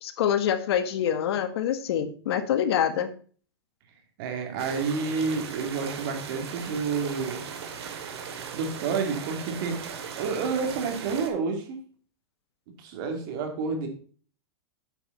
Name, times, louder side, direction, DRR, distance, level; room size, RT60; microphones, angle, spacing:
voice 1, 0.0-3.1, left 9 dB, 70° left, 10 dB, 1.5 m, -26 dB
voice 2, 4.2-7.4 8.5-11.8 12.8-13.9, right 5 dB, 55° right, 4 dB, 2.9 m, -29 dB
sound 1, 4.6-11.3, right 7 dB, 75° right, 2.2 m, -38 dB
9.1 x 7.3 x 4.1 m, 0.42 s
hypercardioid pair, 140°, 14 cm